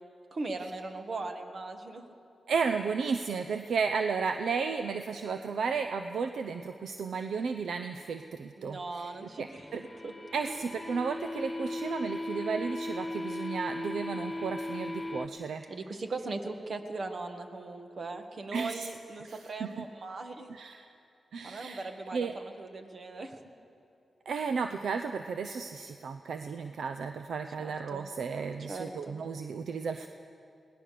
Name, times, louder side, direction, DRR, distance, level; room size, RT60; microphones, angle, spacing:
voice 1, 0.3-2.0 8.6-10.1 10.4-10.5 15.7-20.5 21.4-23.4 27.6-28.1 28.7-29.2, right 3 dB, 60° right, 6 dB, 1.7 m, -39 dB
voice 2, 2.5-9.1 9.4-9.8 10.3-15.6 18.5-18.9 19.2-19.7 20.5-20.9 21.3-22.3 24.3-30.1, right 5 dB, 80° right, 7 dB, 0.7 m, -33 dB
sound 1, 9.3-15.3, left 1 dB, 30° left, 1.3 m, -37 dB
21.5 x 18.0 x 6.8 m, 2.6 s
cardioid pair, 60°, 0 cm